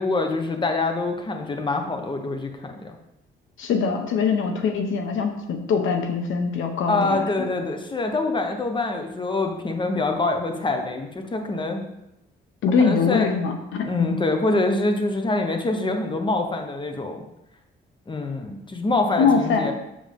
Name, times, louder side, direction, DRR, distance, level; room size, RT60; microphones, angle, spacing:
voice 1, 0.0-2.9 6.9-11.8 12.8-13.3 13.8-17.2 18.1-19.7, left 2 dB, 25° left, 4 dB, 1.2 m, -25 dB
voice 2, 3.6-7.2 12.6-14.2 19.2-19.7, left 5 dB, 80° left, 4 dB, 1.1 m, -23 dB
7.5 x 7.2 x 3.6 m, 0.89 s
cardioid pair, 90°, 20 cm